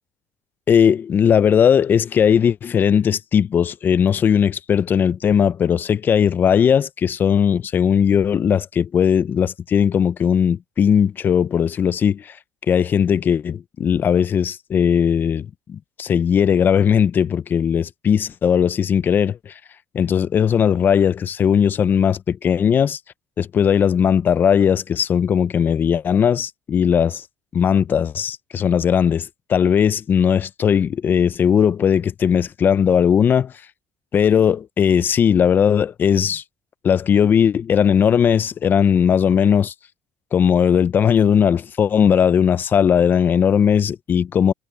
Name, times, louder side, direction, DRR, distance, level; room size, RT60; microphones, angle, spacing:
voice 1, 0.7-12.4 12.7-19.5 19.9-23.0 23.4-27.2 27.5-33.5 34.1-36.4 36.8-39.7 40.3-44.5, left 8 dB, 40° left, 0.6 m, -18 dB
cardioid pair, 105°, 5 cm